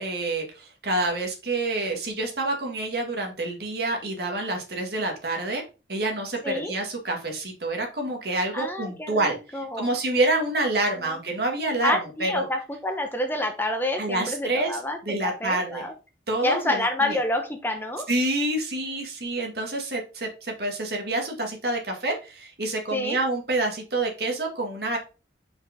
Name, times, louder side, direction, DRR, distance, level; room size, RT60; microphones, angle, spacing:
voice 1, 0.0-5.6 5.9-11.9 12.2-12.5 14.0-14.7 15.0-15.9 16.3-17.2 18.1-25.0, right 2 dB, 60° right, 1 dB, 2.0 m, -27 dB
voice 2, 8.5-9.9 11.0-11.1 11.8-15.9 16.4-18.1 22.9-23.2, left 1 dB, 10° left, 4 dB, 0.8 m, -28 dB
5.3 x 5.1 x 3.5 m, 0.31 s
head